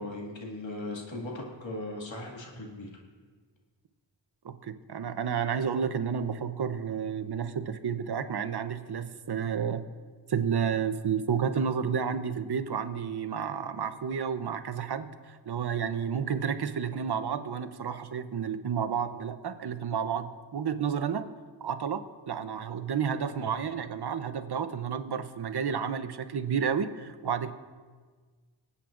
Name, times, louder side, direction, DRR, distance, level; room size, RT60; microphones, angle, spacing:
voice 1, 0.0-2.9, left 2 dB, 75° left, -1 dB, 2.2 m, -38 dB
voice 2, 4.4-9.8 10.3-21.2 21.6-27.5, right 7 dB, 60° right, 10 dB, 0.8 m, -31 dB
26.0 x 8.7 x 2.5 m, 1.5 s
cardioid pair, 45°, 45 cm